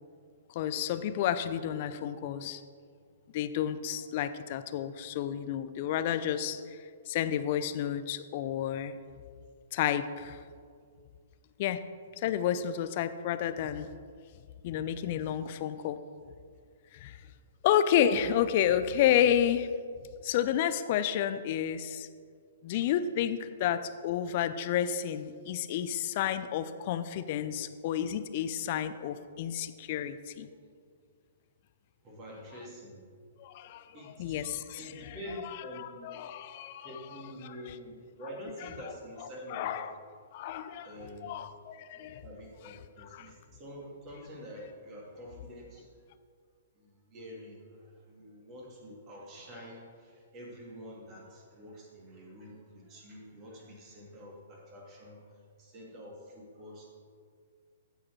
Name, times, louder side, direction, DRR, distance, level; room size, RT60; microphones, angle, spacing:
voice 1, 0.5-2.6 3.3-6.6 7.1-8.9 9.7-10.4 11.6-11.8 12.2-13.9 14.6-16.0 16.9-17.2 17.6-19.7 20.2-22.1 22.6-30.5 33.4-35.2 35.4-35.5 35.8-36.9 37.4-37.7 38.6-38.7 39.5-39.9 40.3-42.2 43.0-43.3, left 10 dB, 45° left, 11 dB, 0.5 m, -30 dB
voice 2, 32.0-33.0 33.9-34.1 34.8-36.1 36.8-39.7 40.8-41.3 41.9-45.9 46.8-55.3 55.6-56.9, equal, 30° right, -2 dB, 2.5 m, -47 dB
14.5 x 4.8 x 4.6 m, 2.1 s
figure-of-eight pair, 115°, 0 cm